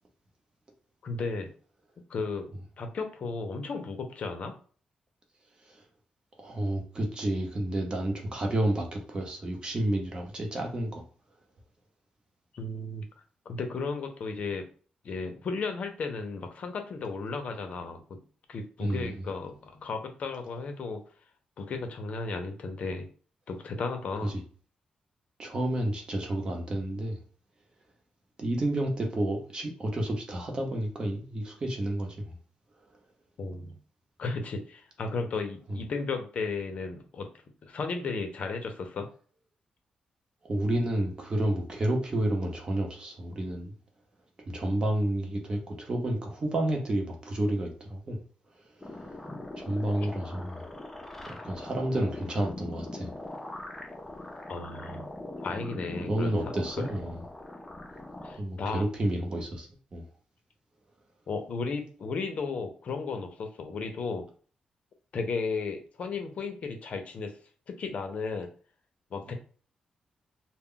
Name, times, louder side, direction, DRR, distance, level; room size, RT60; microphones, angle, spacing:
voice 1, 1.0-1.5 2.1-2.5 2.8-4.5 12.5-13.1 13.5-14.6 15.0-18.2 18.5-21.0 21.6-23.1 23.5-24.3 33.4-33.8 34.2-37.3 37.6-39.1 54.5-55.1 55.4-56.4 58.2-58.9 61.3-64.3 65.1-67.3 67.7-68.5 69.1-69.3, left 4 dB, 55° left, 0.6 m, -34 dB
voice 2, 6.4-11.0 18.8-19.2 24.2-24.4 25.4-27.2 28.4-32.3 35.7-35.8 40.4-43.7 44.5-48.2 49.6-50.6 51.2-53.1 56.1-57.2 58.4-60.0 69.3-69.4, right 1 dB, 35° right, 0.8 m, -30 dB
sound 1, 48.8-58.4, left 1 dB, 10° left, 0.5 m, -41 dB
2.2 x 2.1 x 3.7 m
cardioid pair, 120°, 3 cm